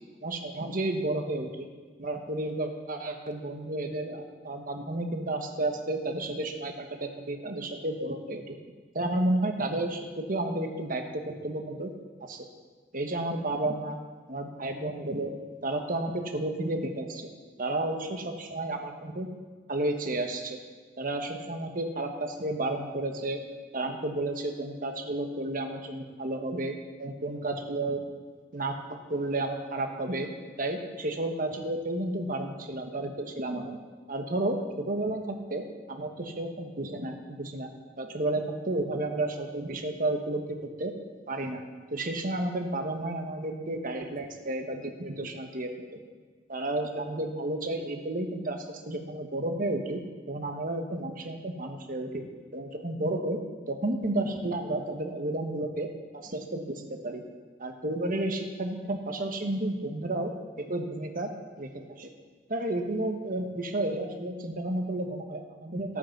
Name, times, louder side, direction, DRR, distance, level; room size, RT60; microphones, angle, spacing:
voice 1, 0.2-1.7 2.0-8.6 8.9-11.9 12.2-12.5 12.9-14.0 14.3-15.3 15.6-17.3 17.6-19.3 19.7-20.6 21.0-23.4 23.7-26.7 27.0-28.0 28.5-28.8 29.1-30.3 30.6-33.8 34.1-37.7 38.0-40.9 41.3-41.6 41.9-46.0 46.5-50.0 50.3-52.2 52.5-53.4 53.7-57.2 57.6-60.3 60.6-61.3 61.6-62.1 62.5-66.0, right 2 dB, 45° right, 4 dB, 1.4 m, -32 dB
17.0 x 8.6 x 5.9 m, 1.5 s
head